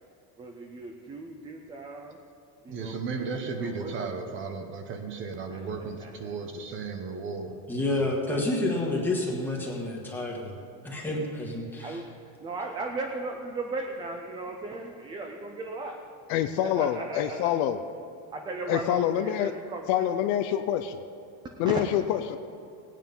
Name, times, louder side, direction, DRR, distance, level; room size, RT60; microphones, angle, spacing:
voice 1, 0.4-2.2 2.6-4.1 5.5-5.6 6.0-6.3 11.8-12.1 12.4-16.0 16.6-17.5 18.3-20.0 21.6-21.7, right 3 dB, 15° right, 2 dB, 0.4 m, -37 dB
voice 2, 2.7-7.6 7.8-8.2, right 4 dB, 30° right, 5 dB, 1.0 m, -35 dB
voice 3, 7.7-10.6 10.8-12.0, left 2 dB, 5° left, -2 dB, 1.6 m, -29 dB
voice 4, 16.3-17.8 18.7-19.5 19.9-21.0 21.6-22.4, left 10 dB, 50° left, 9 dB, 0.5 m, -26 dB
18.0 x 9.3 x 5.4 m, 2.5 s
cardioid pair, 180°, 39 cm